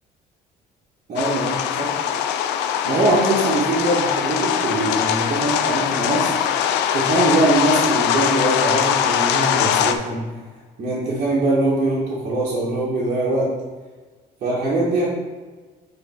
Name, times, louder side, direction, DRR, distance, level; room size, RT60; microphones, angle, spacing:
voice 1, 1.1-1.9 2.8-6.3 6.9-10.2 10.8-13.5 14.4-15.1, right 2 dB, 50° right, -8 dB, 1.9 m, -22 dB
sound 1, 1.2-9.9, left 9 dB, 90° left, 0.5 m, -21 dB
8.1 x 3.7 x 4.6 m, 1.4 s
cardioid pair, 110°, 17 cm